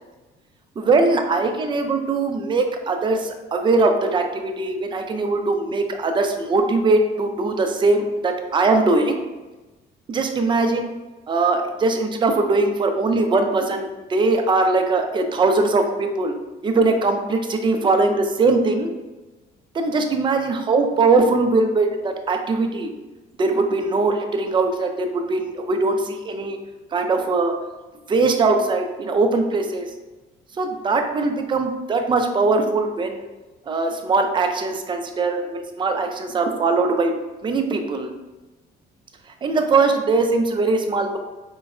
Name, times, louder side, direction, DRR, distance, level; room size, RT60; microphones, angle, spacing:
voice 1, 0.8-9.3 10.1-10.9 11.3-16.3 16.6-18.9 19.7-22.9 23.4-26.6 26.9-27.5 28.1-29.9 30.6-33.2 33.7-37.1 37.4-38.1 39.4-41.2, right 3 dB, 30° right, 5 dB, 0.4 m, -21 dB
4.4 x 2.0 x 2.4 m, 1.2 s
cardioid pair, 110°, 17 cm